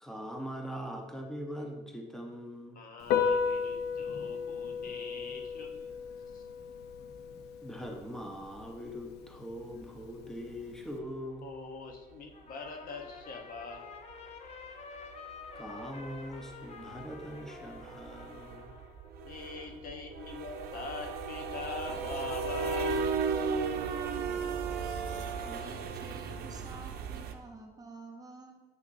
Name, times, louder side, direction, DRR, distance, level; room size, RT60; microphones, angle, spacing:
voice 1, 0.0-2.8 7.6-11.5 15.6-18.7, equal, 5° left, 2 dB, 0.9 m, -42 dB
voice 2, 2.8-5.8 6.3-6.5 7.0-7.4 11.4-13.9 19.2-23.1, left 4 dB, 55° left, 3 dB, 1.0 m, -43 dB
Piano, 3.0-11.0, left 6 dB, 75° left, 0.6 m, -35 dB
sound 1, 10.9-11.0 12.7-12.9 13.2-13.3 13.6-13.8 14.1-14.2 14.5-27.3, right 5 dB, 70° right, 0.6 m, -36 dB
Trumpet, 12.3-19.1, left 5 dB, 40° left, 0.7 m, -49 dB
voice 3, 25.4-28.6, right 3 dB, 20° right, 2 dB, 1.0 m, -49 dB
7.8 x 5.8 x 2.6 m, 1.1 s
cardioid pair, 110°, 17 cm